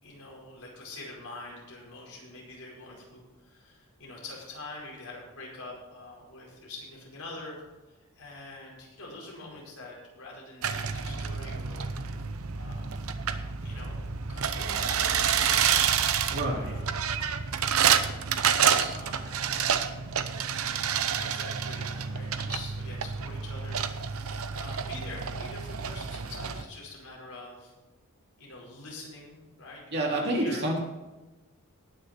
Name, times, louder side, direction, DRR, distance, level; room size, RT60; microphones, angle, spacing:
voice 1, 0.0-7.6 7.9-11.9 12.5-13.0 13.6-17.1 18.4-19.5 21.1-27.7 28.4-30.8, left 2 dB, 75° left, -3 dB, 4.9 m, -45 dB
sound 1, 10.6-26.6, right 7 dB, 70° right, 0.8 m, -29 dB
voice 2, 16.3-16.8 29.9-30.8, right 1 dB, 50° right, -2 dB, 2.9 m, -28 dB
19.0 x 6.5 x 4.4 m, 1.1 s
head